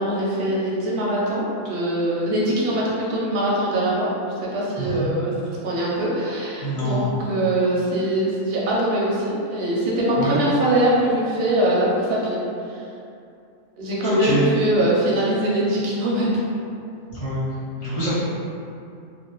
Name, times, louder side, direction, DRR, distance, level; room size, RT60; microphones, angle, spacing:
voice 1, 0.0-4.1 4.4-5.3 5.6-12.4 12.7-12.8 13.8-16.3, right 1 dB, 55° right, -5 dB, 0.7 m, -22 dB
voice 2, 4.8-5.1 6.6-7.1 10.2-10.4 14.0-14.4 17.1-17.4 17.8-18.1, equal, 30° left, -12 dB, 0.8 m, -24 dB
2.2 x 2.2 x 3.0 m, 2.5 s
omnidirectional pair, 1.4 m